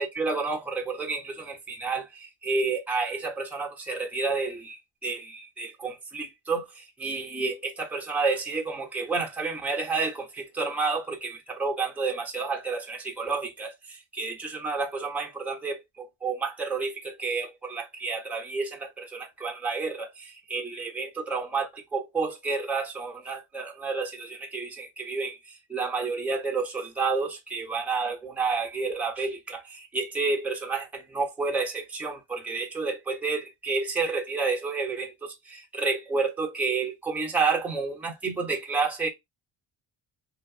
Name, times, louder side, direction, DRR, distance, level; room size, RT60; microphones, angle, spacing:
voice 1, 0.0-39.1, right 4 dB, 5° right, 0.6 m, -30 dB
2.7 x 2.5 x 2.4 m
cardioid pair, 140°, 44 cm